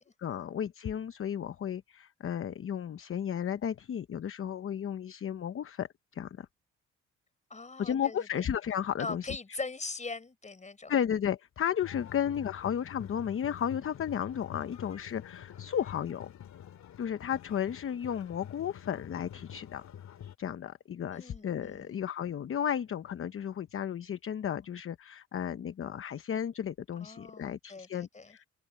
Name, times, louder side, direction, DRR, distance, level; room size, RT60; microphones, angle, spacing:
voice 1, 0.2-5.9 6.1-6.5 7.8-9.3 10.9-16.3 17.0-19.9 20.4-28.4, left 9 dB, 45° left, 0.9 m, -33 dB
voice 2, 7.5-8.3 9.0-11.0 21.1-21.9 27.0-28.4, left 3 dB, 25° left, 4.1 m, -41 dB
sound 1, 11.8-20.4, left 10 dB, 65° left, 2.4 m, -47 dB
cardioid pair, 90°, 30 cm